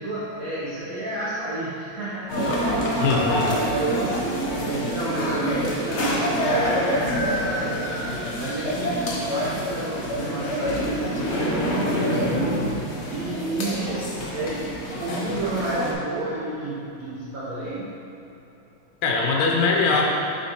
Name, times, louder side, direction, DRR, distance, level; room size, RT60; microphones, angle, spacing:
voice 1, 0.0-3.0 3.7-12.7 13.1-14.7 15.0-17.9, right 2 dB, 60° right, -7 dB, 1.0 m, -31 dB
sound 1, 2.3-15.9, equal, 70° left, 0.6 m, -26 dB
voice 2, 3.0-3.6 19.0-20.0, left 4 dB, 85° left, -1 dB, 1.6 m, -21 dB
7.2 x 4.7 x 2.9 m, 2.9 s
omnidirectional pair, 2.3 m